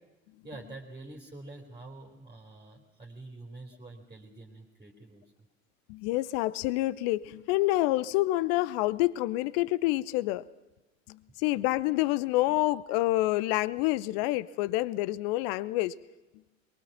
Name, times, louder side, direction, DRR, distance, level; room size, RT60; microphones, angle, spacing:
voice 1, 0.4-5.2 11.3-11.4, right 2 dB, 15° right, 1 dB, 3.6 m, -47 dB
voice 2, 5.9-10.4 11.1-15.9, left 17 dB, 45° left, 21 dB, 0.8 m, -28 dB
23.5 x 22.5 x 6.0 m, 1.1 s
figure-of-eight pair, 75°, 40 cm